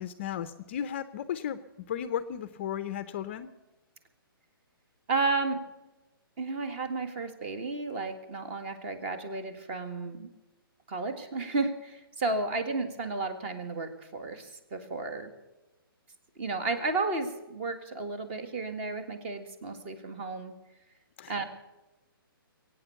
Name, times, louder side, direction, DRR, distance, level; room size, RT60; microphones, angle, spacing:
voice 1, 0.0-3.5 21.2-21.4, left 9 dB, 30° left, 13 dB, 0.6 m, -35 dB
voice 2, 5.1-5.6 6.4-10.3 10.9-15.3 16.3-20.5 21.3-21.4, right 3 dB, 30° right, 8 dB, 1.7 m, -32 dB
22.0 x 9.1 x 6.9 m, 1.1 s
hypercardioid pair, 165°, 12 cm